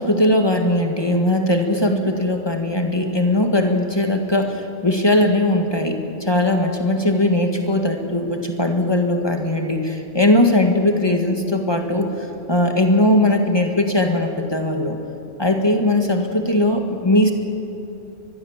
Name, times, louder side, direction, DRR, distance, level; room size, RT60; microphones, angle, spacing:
voice 1, 0.0-12.1 12.5-15.0 15.4-17.3, left 1 dB, 25° left, 3 dB, 1.8 m, -19 dB
23.5 x 21.0 x 7.3 m, 2.9 s
omnidirectional pair, 1.1 m